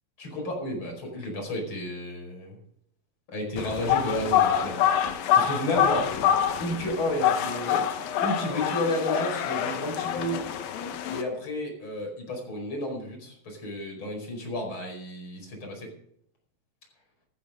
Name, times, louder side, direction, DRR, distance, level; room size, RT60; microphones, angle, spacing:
voice 1, 0.2-2.6 3.3-4.9 5.4-6.1 6.6-7.9 8.2-10.5 11.1-15.9, left 1 dB, 35° left, 1 dB, 5.7 m, -32 dB
sound 1, 3.6-11.2, left 9 dB, 75° left, 3.0 m, -26 dB
15.5 x 14.0 x 3.8 m, 0.71 s
omnidirectional pair, 4.2 m